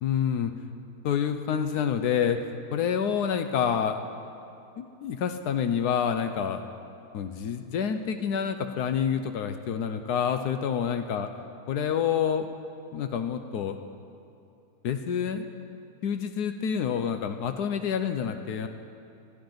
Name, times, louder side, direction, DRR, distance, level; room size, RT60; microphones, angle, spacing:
voice 1, 0.0-0.5 1.0-4.0 4.8-6.6 7.1-11.3 11.7-12.5 12.9-13.8 14.8-15.5 16.0-18.7, left 8 dB, 85° left, 8 dB, 1.2 m, -28 dB
22.0 x 13.0 x 3.9 m, 2.6 s
omnidirectional pair, 1.7 m